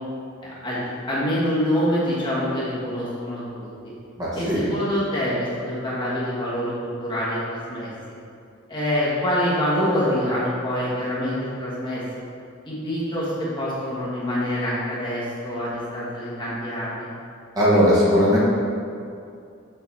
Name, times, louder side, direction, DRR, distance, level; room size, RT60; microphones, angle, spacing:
voice 1, 0.4-0.8 1.1-3.7 4.3-7.9 8.7-12.0 12.6-17.1, equal, 25° left, -8 dB, 1.3 m, -25 dB
voice 2, 4.2-4.7 17.6-18.4, equal, 20° right, -8 dB, 1.2 m, -18 dB
6.8 x 3.9 x 4.1 m, 2.5 s
head